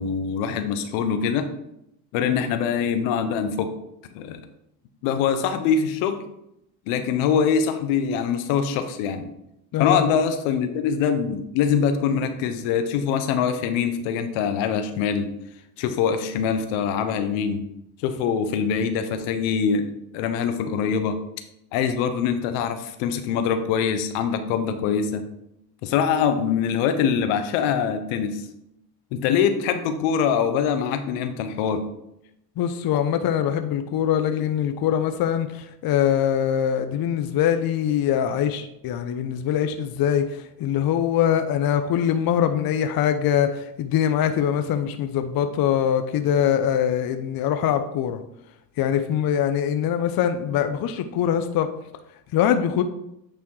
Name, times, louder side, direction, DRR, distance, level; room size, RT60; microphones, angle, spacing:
voice 1, 0.0-1.5 2.1-3.7 4.1-4.4 5.0-6.2 6.9-9.3 9.8-15.3 15.8-17.6 18.0-21.2 21.7-25.2 25.8-28.4 29.1-31.9, left 7 dB, 75° left, 8 dB, 1.0 m, -23 dB
voice 2, 9.7-10.0 32.6-48.2 48.8-51.7 52.3-52.8, left 9 dB, 50° left, 8 dB, 0.7 m, -23 dB
8.8 x 3.4 x 4.7 m, 0.81 s
supercardioid pair, 85°, 48 cm